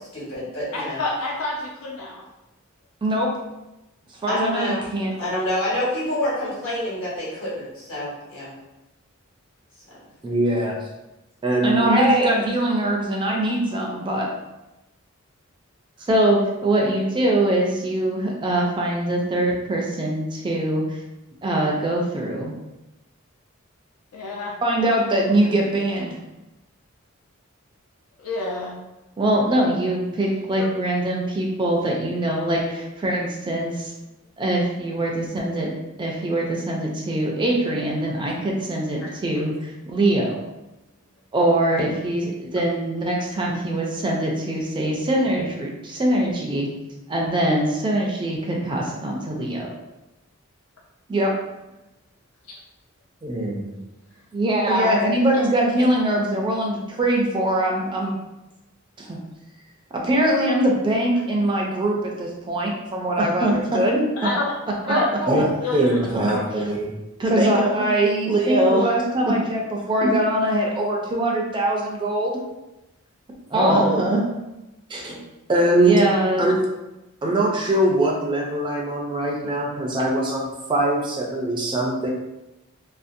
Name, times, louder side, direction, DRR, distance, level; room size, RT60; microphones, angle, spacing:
voice 1, 0.1-1.0 4.3-4.8 5.2-8.5, left 1 dB, 65° left, -9 dB, 1.2 m, -27 dB
voice 2, 0.7-2.2 24.1-24.5 28.2-28.7 39.0-39.2 55.3-55.5 64.2-64.4 64.9-65.1 65.6-66.4, left 3 dB, 90° left, -2 dB, 0.4 m, -28 dB
voice 3, 3.0-3.3 4.2-5.1 10.2-10.8 11.4-14.3 16.1-21.0 21.4-22.5 24.6-26.2 29.2-33.9 34.4-35.7 36.0-40.4 41.3-46.7 47.1-49.7 51.1-51.3 53.2-53.8 54.3-58.2 59.0-59.2 60.0-64.3 64.9-66.9 67.2-72.4 73.5-74.2 74.9-75.2 75.5-76.6 77.2-82.1, right 1 dB, 20° right, -1 dB, 0.3 m, -22 dB
2.5 x 2.0 x 2.5 m, 0.99 s
head